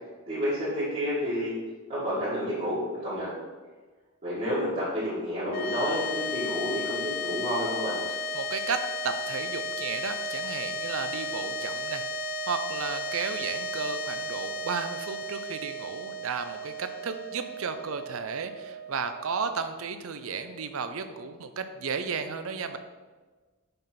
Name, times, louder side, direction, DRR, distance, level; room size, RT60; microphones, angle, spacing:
voice 1, 0.3-1.6 1.9-3.3 4.2-8.0, equal, 35° right, -13 dB, 2.0 m, -30 dB
sound 1, 5.5-19.9, left 1 dB, 45° left, 0.3 m, -34 dB
voice 2, 8.3-12.0 12.5-22.8, right 5 dB, 70° right, 9 dB, 0.5 m, -33 dB
5.3 x 4.0 x 5.7 m, 1.3 s
head